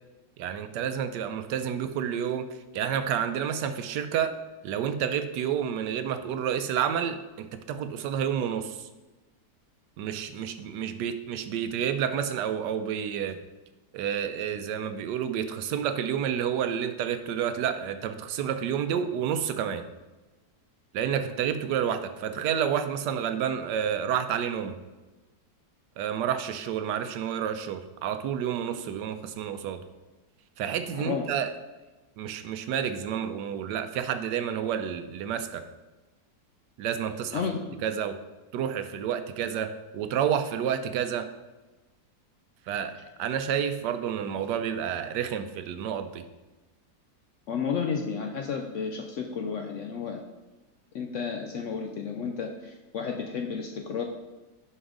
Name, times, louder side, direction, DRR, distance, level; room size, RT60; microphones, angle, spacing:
voice 1, 0.4-2.5 2.7-4.3 4.6-8.8 10.0-13.4 13.9-19.8 20.9-24.8 26.0-29.8 30.6-31.5 32.2-35.6 36.8-37.4 37.8-38.2 38.5-41.3 42.7-46.2, right 8 dB, 85° right, 10 dB, 1.2 m, -29 dB
voice 2, 30.9-31.3 37.3-37.8 47.5-50.2 50.9-54.0, left 6 dB, 70° left, 3 dB, 0.7 m, -32 dB
6.9 x 5.5 x 3.7 m, 1.1 s
omnidirectional pair, 1.8 m